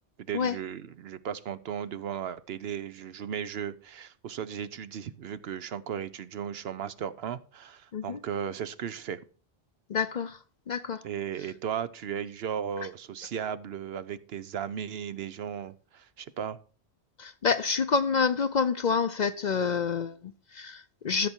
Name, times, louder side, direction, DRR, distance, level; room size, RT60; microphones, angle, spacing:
voice 1, 0.2-9.2 11.0-16.6, right 8 dB, 70° right, 0.9 m, -36 dB
voice 2, 9.9-10.4 10.7-11.0 17.2-21.3, left 5 dB, 50° left, 0.6 m, -28 dB
13.5 x 6.8 x 4.4 m
omnidirectional pair, 1.1 m